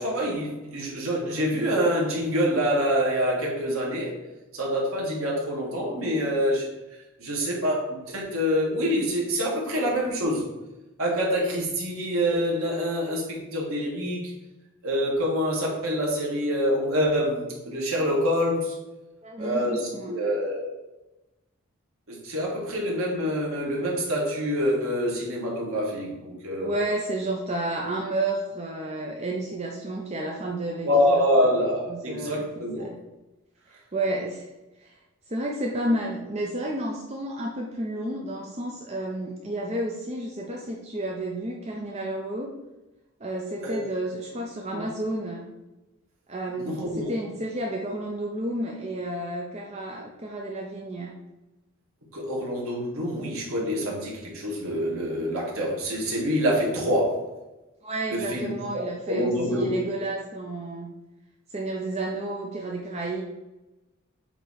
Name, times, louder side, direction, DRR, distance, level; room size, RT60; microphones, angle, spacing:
voice 1, 0.0-4.1 4.5-6.7 7.2-10.4 11.0-14.3 14.8-18.7 19.4-20.7 22.1-26.7 30.8-32.9 43.6-43.8 44.7-44.9 46.6-47.1 52.1-57.3 58.1-59.7, equal, 90° right, -3 dB, 1.7 m, -26 dB
voice 2, 19.2-20.2 26.6-31.3 31.9-33.0 33.7-34.5 34.8-35.0 35.3-42.5 43.2-45.4 46.3-51.1 57.8-60.9 61.5-63.2, right 1 dB, 30° right, -1 dB, 0.6 m, -31 dB
8.0 x 2.9 x 4.7 m, 1.0 s
head